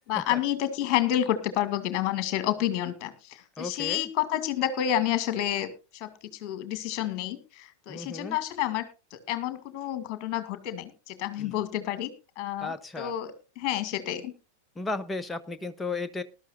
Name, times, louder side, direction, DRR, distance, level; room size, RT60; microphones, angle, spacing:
voice 1, 0.1-6.1 6.4-8.8 9.1-14.3, left 11 dB, 40° left, 11 dB, 2.1 m, -29 dB
voice 2, 3.6-4.1 7.9-8.4 11.4-11.6 12.6-13.1 14.7-16.2, left 3 dB, 10° left, 9 dB, 1.0 m, -34 dB
19.0 x 12.5 x 2.5 m, 0.30 s
figure-of-eight pair, 90°, 0 cm